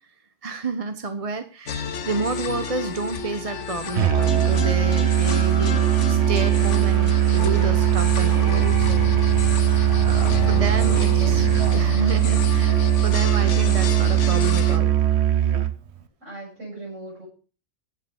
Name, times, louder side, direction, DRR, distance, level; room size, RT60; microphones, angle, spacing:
voice 1, 0.4-9.0 10.1-11.5 11.7-14.9, right 3 dB, 30° right, 8 dB, 1.0 m, -30 dB
sound 1, 1.7-14.8, left 6 dB, 70° left, 1.4 m, -31 dB
Musical instrument, 3.9-15.8, right 11 dB, 65° right, 1.1 m, -20 dB
voice 2, 10.3-11.5 16.2-17.3, right 1 dB, 90° right, -5 dB, 7.1 m, -39 dB
15.5 x 5.8 x 7.1 m, 0.37 s
omnidirectional pair, 1.3 m